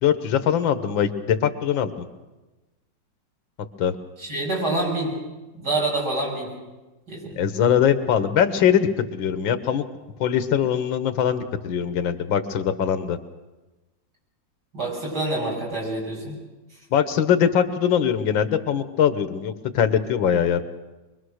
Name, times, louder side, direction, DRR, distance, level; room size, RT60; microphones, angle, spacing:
voice 1, 0.0-2.1 3.8-4.0 7.4-9.8 10.2-13.2 16.9-20.6, left 8 dB, 85° left, 11 dB, 1.9 m, -22 dB
voice 2, 4.2-5.1 5.5-6.5 7.1-7.4 14.7-16.4, right 2 dB, 60° right, -2 dB, 7.5 m, -26 dB
23.5 x 22.0 x 6.4 m, 1.1 s
omnidirectional pair, 2.0 m